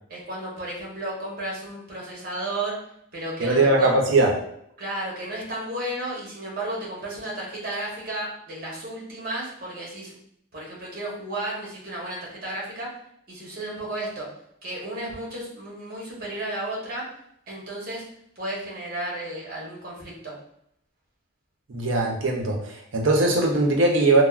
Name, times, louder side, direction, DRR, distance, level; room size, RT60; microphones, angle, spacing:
voice 1, 0.1-2.8 3.1-4.0 4.8-10.2 10.5-12.9 13.3-14.3 14.6-17.1 17.5-18.0 18.4-20.3, right 1 dB, 50° right, -4 dB, 0.9 m, -33 dB
voice 2, 3.4-4.3 21.7-24.2, right 2 dB, 70° right, 1 dB, 0.6 m, -20 dB
3.3 x 2.0 x 2.3 m, 0.71 s
head